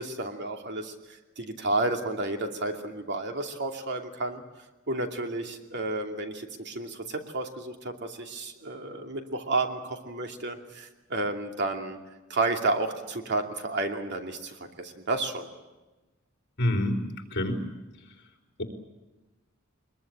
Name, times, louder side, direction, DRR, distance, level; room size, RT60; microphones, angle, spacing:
voice 1, 0.0-4.4 4.9-12.0 12.3-15.5, right 2 dB, 55° right, 4 dB, 2.6 m, -31 dB
voice 2, 16.6-17.0 17.3-17.6, left 1 dB, 55° left, 3 dB, 3.7 m, -26 dB
23.0 x 22.0 x 8.9 m, 1.1 s
head